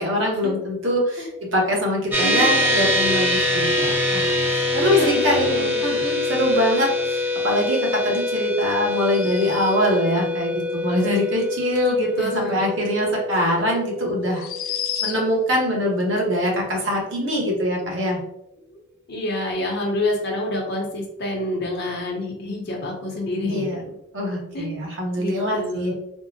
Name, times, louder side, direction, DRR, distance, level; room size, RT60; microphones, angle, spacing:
voice 1, 0.0-14.5 15.0-18.2 23.4-23.8 24.1-26.0, equal, 60° right, -1 dB, 0.9 m, -23 dB
sound 1, 2.1-15.7, left 2 dB, 10° right, 0.5 m, -25 dB
voice 2, 2.2-2.9 4.8-5.8 12.2-12.7 18.7-18.8 19.1-23.7 24.5-24.7 25.2-26.0, left 1 dB, 50° left, 0 dB, 0.7 m, -27 dB
sound 2, 8.9-10.0 13.1-13.2 14.3-15.5, left 9 dB, 80° left, 0.4 m, -31 dB
3.5 x 2.0 x 2.7 m, 0.83 s
head